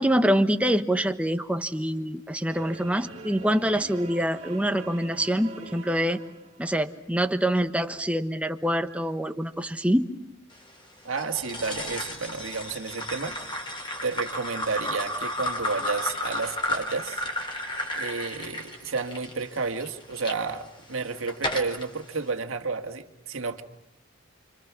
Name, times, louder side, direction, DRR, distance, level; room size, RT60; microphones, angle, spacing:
voice 1, 0.0-6.2 6.6-10.1, equal, 5° right, 7 dB, 1.2 m, -25 dB
sound 1, 2.5-6.9, right 3 dB, 35° right, 3.0 m, -45 dB
voice 2, 11.0-13.7 14.0-17.2 17.9-23.6, right 4 dB, 80° right, 6 dB, 1.9 m, -31 dB
sound 2, 11.2-20.4 20.9-21.9, left 1 dB, 25° left, 3.6 m, -33 dB
29.5 x 26.0 x 6.1 m, 0.89 s
head